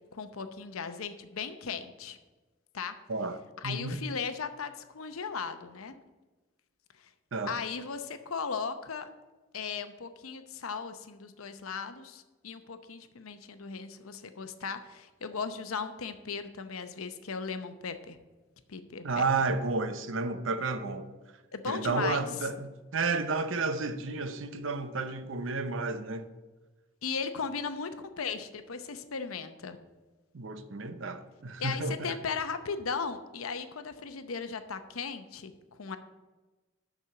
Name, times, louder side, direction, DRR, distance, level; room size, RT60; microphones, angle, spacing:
voice 1, 0.1-2.2 2.7-2.9 3.6-5.9 7.5-9.1 9.5-18.2 18.7-19.3 21.5-22.2 27.0-27.9 28.2-29.8 31.6-35.5 35.8-36.0, left 5 dB, 85° left, 0.8 m, -37 dB
voice 2, 3.1-4.0 7.3-7.6 19.0-21.1 21.7-26.3 30.3-32.2, right 3 dB, 65° right, 0.7 m, -32 dB
6.7 x 6.2 x 7.5 m
head